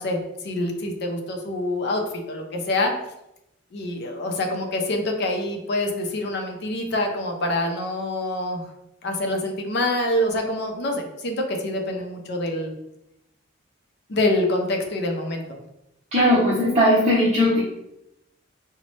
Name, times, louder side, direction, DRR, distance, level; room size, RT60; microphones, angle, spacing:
voice 1, 0.0-2.9 3.7-8.7 9.0-12.7 14.1-15.6, left 1 dB, 60° left, 3 dB, 0.5 m, -26 dB
voice 2, 16.1-17.6, equal, 35° right, -6 dB, 0.7 m, -18 dB
3.9 x 2.1 x 3.2 m, 0.86 s
head